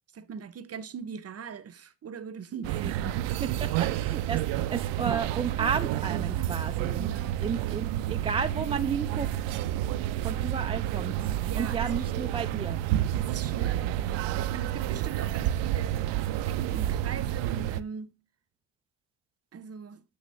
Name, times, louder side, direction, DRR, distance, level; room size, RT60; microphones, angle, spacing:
voice 1, 0.1-3.6 6.9-7.4 11.5-11.9 13.2-16.0 16.4-18.1 19.5-20.0, right 7 dB, 30° right, 0.8 m, -40 dB
sound 1, 2.6-17.8, right 12 dB, 70° right, 0.6 m, -30 dB
voice 2, 2.7-3.1 3.9-7.1 7.4-9.7 10.2-13.1, right 6 dB, 15° right, 0.3 m, -33 dB
8.6 x 2.9 x 5.5 m
supercardioid pair, 80°, 46 cm